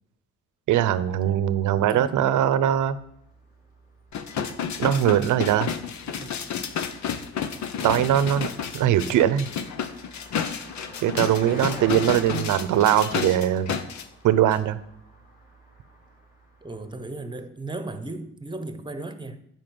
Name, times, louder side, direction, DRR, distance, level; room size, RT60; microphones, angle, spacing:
voice 1, 0.7-3.0 4.8-5.7 7.8-8.5 8.7-9.5 11.0-13.7 14.2-14.8, right 11 dB, 80° right, 0.8 m, -21 dB
Car passing by, 1.4-17.2, equal, 30° left, 3.9 m, -48 dB
voice 2, 1.8-2.2 6.1-6.3 11.4-11.8 12.3-12.5 16.6-19.4, right 2 dB, 15° right, 1.1 m, -36 dB
sound 1, 4.1-14.0 14.5-14.6, left 7 dB, 65° left, 1.0 m, -31 dB
10.0 x 4.7 x 7.8 m
cardioid pair, 90°, 30 cm